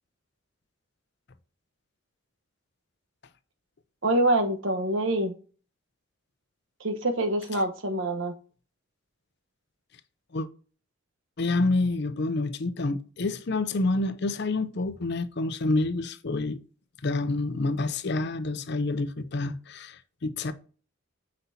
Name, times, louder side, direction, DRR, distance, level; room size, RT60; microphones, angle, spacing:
voice 1, 4.0-5.3 6.8-8.3, right 1 dB, 70° right, 1.1 m, -25 dB
voice 2, 11.4-16.6 17.0-20.5, left 2 dB, 55° left, 0.6 m, -28 dB
8.1 x 5.3 x 2.8 m
head